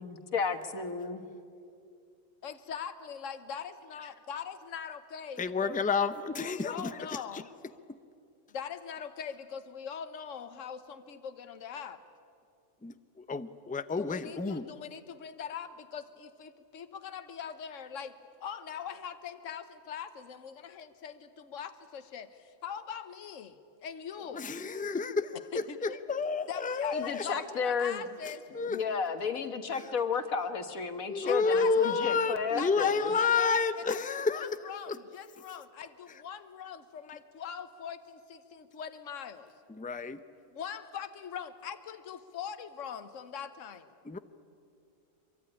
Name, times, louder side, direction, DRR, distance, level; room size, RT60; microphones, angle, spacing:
voice 1, 0.0-1.2 26.9-28.1 28.7-33.1, left 5 dB, 85° left, 8 dB, 1.9 m, -32 dB
voice 2, 2.4-5.8 6.3-7.5 8.5-12.0 14.0-18.1 18.4-24.5 25.5-26.0 26.5-28.5 31.3-32.1 32.6-39.5 40.5-43.9, left 7 dB, 65° left, 10 dB, 1.4 m, -42 dB
voice 3, 5.4-6.7 12.8-12.9 13.3-14.7 24.3-27.2 28.5-28.8 31.1-34.5 34.9-35.0 39.8-40.2 44.1-44.2, left 4 dB, 10° left, 12 dB, 0.5 m, -30 dB
24.0 x 23.5 x 9.9 m, 2.4 s
omnidirectional pair, 1.4 m